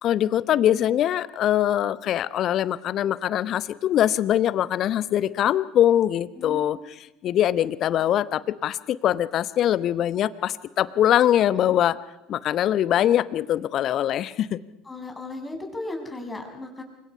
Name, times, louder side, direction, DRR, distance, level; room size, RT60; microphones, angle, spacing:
voice 1, 0.0-6.8 7.2-12.0 12.3-14.6, left 11 dB, 45° left, 17 dB, 1.0 m, -22 dB
voice 2, 6.4-6.8 11.7-11.8 14.8-16.8, left 2 dB, 15° left, 3 dB, 6.6 m, -36 dB
29.0 x 25.0 x 5.6 m, 0.94 s
figure-of-eight pair, 65°, 0 cm